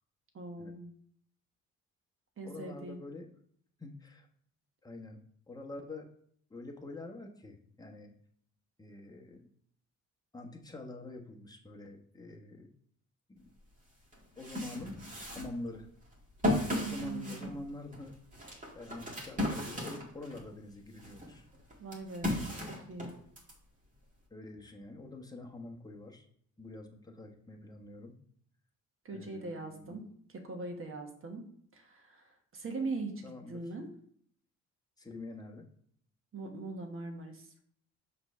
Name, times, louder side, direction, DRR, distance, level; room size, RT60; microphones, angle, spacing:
voice 1, 0.3-0.9 2.4-3.0 16.8-17.5 21.8-23.1 29.0-30.1 30.3-31.4 31.7-32.2 32.5-33.2 33.5-33.9 36.3-37.5, right 3 dB, 45° right, 4 dB, 1.4 m, -41 dB
voice 2, 2.4-3.3 3.8-4.3 4.8-6.1 6.5-8.1 8.8-9.5 10.3-12.7 13.3-13.4 14.4-15.9 16.8-18.2 18.4-21.4 22.6-22.7 24.3-26.3 26.6-28.2 29.1-30.0 33.2-33.6 35.0-35.7, left 2 dB, 15° left, 1 dB, 1.1 m, -46 dB
sound 1, 13.6-13.7 14.1-20.5 20.9-23.5, left 1 dB, 25° right, 2.0 m, -36 dB
5.9 x 3.3 x 5.5 m, 0.63 s
cardioid pair, 90°, 30 cm